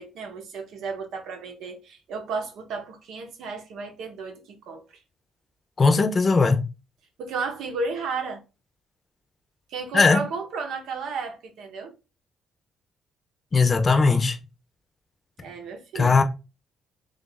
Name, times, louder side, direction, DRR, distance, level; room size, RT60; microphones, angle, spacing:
voice 1, 0.0-5.0 7.2-8.4 9.7-11.9 15.4-16.2, right 4 dB, 80° right, 0.8 m, -33 dB
voice 2, 5.8-6.6 9.9-10.2 13.5-14.4 15.9-16.2, left 4 dB, 35° left, 0.6 m, -19 dB
3.2 x 2.5 x 3.9 m
cardioid pair, 90°, 0 cm